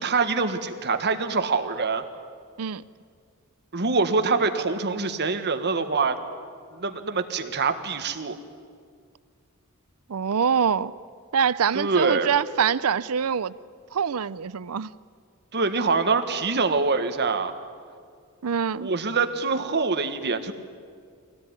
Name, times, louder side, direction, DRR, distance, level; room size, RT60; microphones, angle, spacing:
voice 1, 0.0-2.0 3.7-6.2 6.7-8.4 11.7-12.3 15.5-17.5 18.8-20.5, right 4 dB, 50° right, 7 dB, 1.5 m, -25 dB
voice 2, 10.1-10.9 11.3-13.5 13.9-14.9 18.4-18.9, right 7 dB, 70° right, 18 dB, 0.5 m, -24 dB
23.0 x 17.5 x 9.7 m, 2.1 s
head